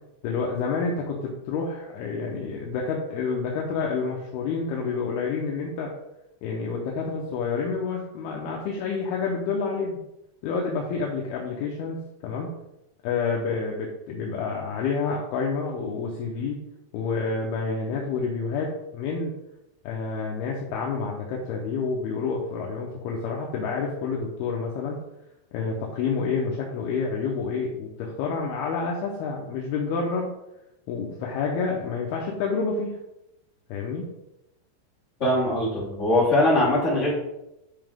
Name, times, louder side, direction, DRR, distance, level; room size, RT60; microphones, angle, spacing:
voice 1, 0.2-5.9 6.4-10.0 10.4-12.0 12.2-12.5 13.0-16.6 16.9-19.3 19.8-25.0 25.5-30.3 30.9-33.0 33.7-34.1, left 4 dB, 75° left, -1 dB, 2.5 m, -28 dB
voice 2, 35.2-37.2, left 1 dB, 25° left, -7 dB, 1.8 m, -21 dB
9.8 x 5.6 x 3.6 m, 0.89 s
omnidirectional pair, 5.3 m